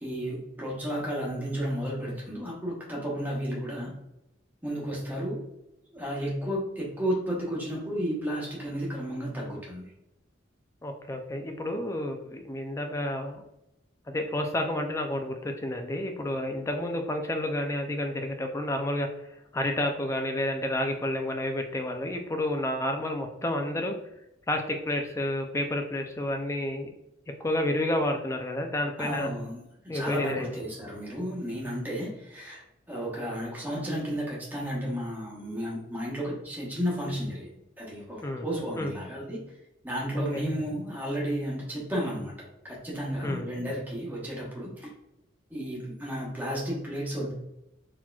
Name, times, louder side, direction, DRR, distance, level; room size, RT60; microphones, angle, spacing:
voice 1, 0.0-3.9 4.6-5.4 5.9-9.9 29.0-37.5 37.8-39.4 39.8-42.3 42.6-44.9 45.5-47.3, equal, 10° right, -4 dB, 1.0 m, -33 dB
voice 2, 10.8-13.4 14.1-19.1 19.5-23.9 24.5-26.9 27.4-29.3 29.9-30.5 38.2-38.4 38.8-38.9 40.1-40.4 43.2-43.5, left 1 dB, 15° left, 4 dB, 0.3 m, -30 dB
4.1 x 2.9 x 2.3 m, 0.87 s
head